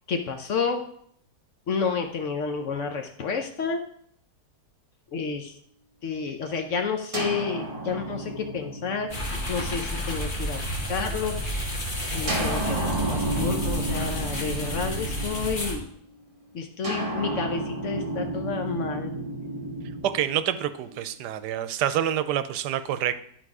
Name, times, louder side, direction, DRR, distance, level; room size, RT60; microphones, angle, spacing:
voice 1, 0.1-0.8 1.7-3.8 5.1-5.5 6.0-11.5 12.1-15.9 16.5-19.1, left 5 dB, 60° left, 5 dB, 0.9 m, -30 dB
sound 1, 7.1-10.9 12.3-15.8 16.8-21.0, right 2 dB, 20° right, 1.4 m, -32 dB
sound 2, 9.1-15.7, equal, 30° left, 1.6 m, -31 dB
voice 2, 20.0-23.2, right 11 dB, 85° right, 12 dB, 1.2 m, -27 dB
11.5 x 3.9 x 4.8 m, 0.65 s
omnidirectional pair, 1.7 m